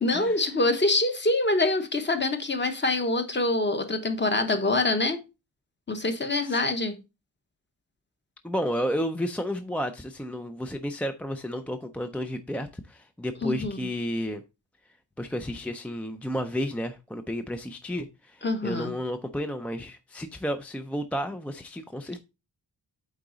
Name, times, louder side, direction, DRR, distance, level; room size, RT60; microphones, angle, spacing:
voice 1, 0.0-5.2 5.9-6.9 13.4-13.9 18.4-18.9, left 2 dB, 25° left, 0.9 m, -25 dB
voice 2, 8.4-14.4 15.2-22.2, equal, 5° left, 0.3 m, -32 dB
8.4 x 4.0 x 3.8 m
wide cardioid pair, 165°, 43 cm